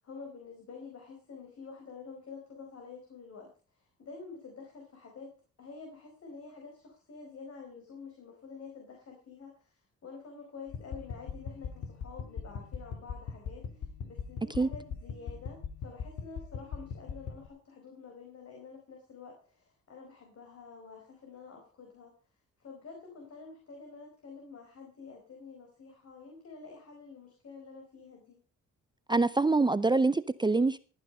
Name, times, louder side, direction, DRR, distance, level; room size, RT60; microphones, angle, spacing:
voice 1, 0.0-5.3 5.6-22.1 22.6-28.4, left 4 dB, 55° left, 4.6 m, -48 dB
sound 1, 10.7-17.5, left 6 dB, 75° left, 2.9 m, -41 dB
voice 2, 29.1-30.8, right 3 dB, 15° right, 0.6 m, -25 dB
15.0 x 9.8 x 5.4 m
cardioid pair, 90°, 30 cm